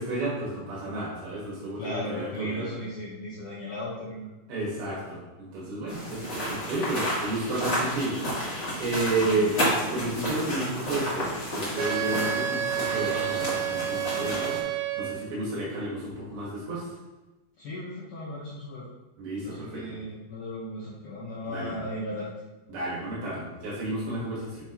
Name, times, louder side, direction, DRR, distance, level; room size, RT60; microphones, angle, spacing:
voice 1, 0.0-2.7 4.5-8.2 8.8-9.6 9.9-14.6 15.0-16.9 19.2-19.8 21.5-21.7 22.7-24.5, right 2 dB, 70° right, -6 dB, 3.6 m, -31 dB
voice 2, 1.8-4.3 9.2-9.9 17.6-18.9 19.4-22.3, left 1 dB, 80° left, -7 dB, 1.8 m, -36 dB
sound 1, 5.9-14.6, equal, 40° left, 1.2 m, -31 dB
Wind instrument woodwind instrument, 11.8-15.3, right 10 dB, 85° right, 2.4 m, -30 dB
7.5 x 6.7 x 3.0 m, 1.1 s
omnidirectional pair, 5.5 m